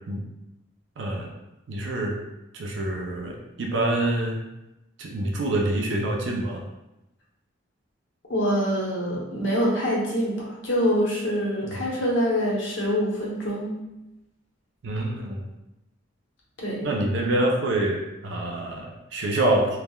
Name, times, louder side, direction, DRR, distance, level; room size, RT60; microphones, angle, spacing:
voice 1, 1.0-1.3 1.7-2.2 2.5-4.4 5.0-6.6 11.6-11.8 14.8-15.5 16.8-19.8, right 1 dB, 65° right, 1 dB, 0.4 m, -26 dB
voice 2, 8.3-13.8 16.6-16.9, equal, 70° left, -4 dB, 0.8 m, -25 dB
3.4 x 2.1 x 2.2 m, 0.93 s
head